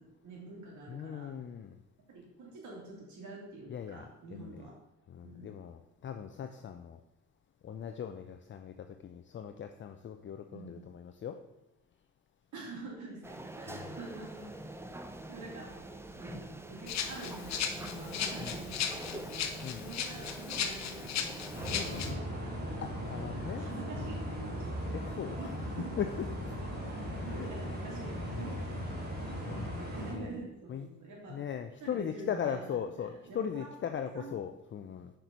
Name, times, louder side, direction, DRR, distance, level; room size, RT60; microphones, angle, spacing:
voice 1, 0.0-1.3 2.1-4.7 5.2-5.6 10.5-10.9 12.5-14.6 15.3-15.8 16.2-22.8 23.3-24.8 25.4-25.9 26.7-28.6 29.2-31.4 31.8-34.3, right 3 dB, 75° right, -2 dB, 2.6 m, -47 dB
voice 2, 0.9-1.7 3.7-4.0 4.4-4.6 5.1-7.0 7.6-11.4 13.7-13.9 18.4-18.6 19.6-19.9 21.7-22.2 22.8-23.6 24.9-25.5 26.0-26.1 26.4-26.5 27.0-27.5 28.3-28.7 29.5-29.8 30.1-30.3 30.7-30.9 31.3-35.1, left 8 dB, 40° left, 7 dB, 0.5 m, -39 dB
sound 1, 13.2-21.9, right 1 dB, 10° right, 0.6 m, -45 dB
Rattle (instrument), 16.9-22.1, left 7 dB, 65° left, 0.8 m, -37 dB
sound 2, 21.5-30.1, equal, 35° right, 2.2 m, -38 dB
6.1 x 4.5 x 5.2 m, 0.90 s
cardioid pair, 90°, 30 cm